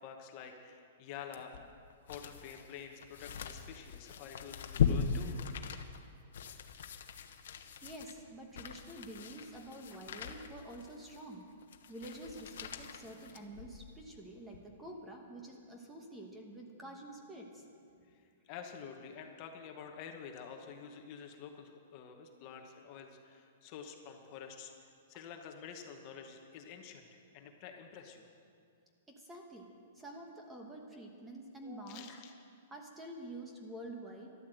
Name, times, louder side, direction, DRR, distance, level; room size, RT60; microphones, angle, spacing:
voice 1, 0.0-1.5 2.0-5.4 18.1-18.2 18.5-24.7 25.1-28.3 31.9-32.3, left 7 dB, 30° left, 4 dB, 1.1 m, -48 dB
sound 1, 1.3-14.0 14.5-14.6, left 7 dB, 65° left, 1.1 m, -39 dB
voice 2, 7.8-11.5 11.9-17.6 29.1-29.7 29.9-32.1 32.7-34.3, right 1 dB, 10° right, 1 dB, 1.1 m, -48 dB
13.0 x 12.0 x 7.8 m, 2.3 s
hypercardioid pair, 175°, 0 cm